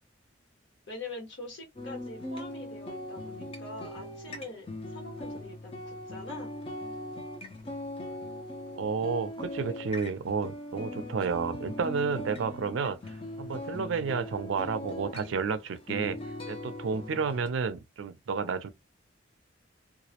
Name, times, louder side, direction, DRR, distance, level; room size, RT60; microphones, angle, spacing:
voice 1, 0.9-6.5 9.7-9.8 11.1-11.2, left 2 dB, 65° left, 1.2 m, -44 dB
sound 1, 1.8-17.5, left 1 dB, 30° left, 0.4 m, -40 dB
voice 2, 8.8-13.0 13.4-16.2 16.5-18.7, right 5 dB, 75° right, 0.4 m, -31 dB
2.3 x 2.0 x 2.8 m
head